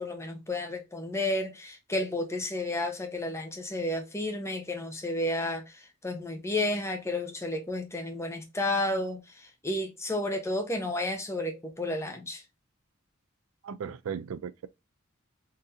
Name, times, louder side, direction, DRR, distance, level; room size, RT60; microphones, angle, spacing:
voice 1, 0.0-12.4, left 1 dB, 15° left, 0.8 m, -32 dB
voice 2, 13.6-14.7, right 7 dB, 80° right, 0.4 m, -36 dB
3.9 x 2.6 x 2.7 m
head